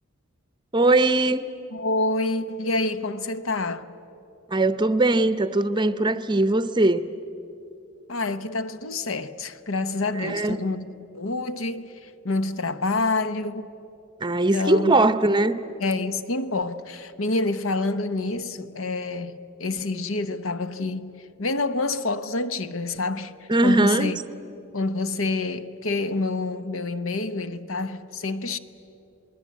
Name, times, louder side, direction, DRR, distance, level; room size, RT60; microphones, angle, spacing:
voice 1, 0.7-1.5 4.5-7.1 10.2-10.6 14.2-15.5 23.5-24.1, right 2 dB, 20° right, 0.7 m, -20 dB
voice 2, 1.7-3.8 8.1-13.7 14.5-14.9 15.8-24.2 24.7-28.6, left 2 dB, 65° left, 1.0 m, -27 dB
27.5 x 20.5 x 8.5 m
head